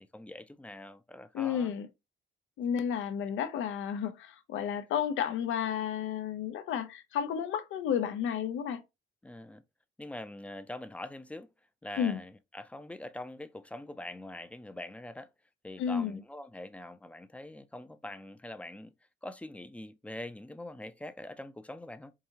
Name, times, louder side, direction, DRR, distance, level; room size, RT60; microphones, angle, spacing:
voice 1, 0.0-1.7 9.2-9.6 10.0-11.5 11.8-15.3 15.6-18.9 19.2-22.1, left 1 dB, 5° left, 0.4 m, -44 dB
voice 2, 1.3-1.9 2.6-8.8 12.0-12.2 15.8-16.2, left 8 dB, 80° left, 0.6 m, -32 dB
4.7 x 2.7 x 2.8 m
cardioid pair, 90°, 20 cm